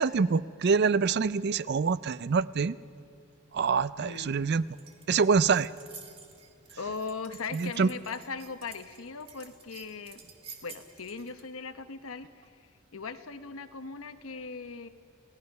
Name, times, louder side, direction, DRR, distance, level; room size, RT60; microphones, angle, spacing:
voice 1, 0.0-2.8 3.5-4.7 5.1-5.7 7.5-7.9, right 5 dB, 50° right, 17 dB, 0.4 m, -25 dB
voice 2, 4.0-4.5 6.8-10.2 10.6-12.3 12.9-14.9, left 4 dB, 80° left, 10 dB, 1.0 m, -39 dB
sound 1, 4.1-11.5, right 5 dB, 30° right, 1.8 m, -52 dB
29.5 x 16.5 x 5.3 m, 2.6 s
head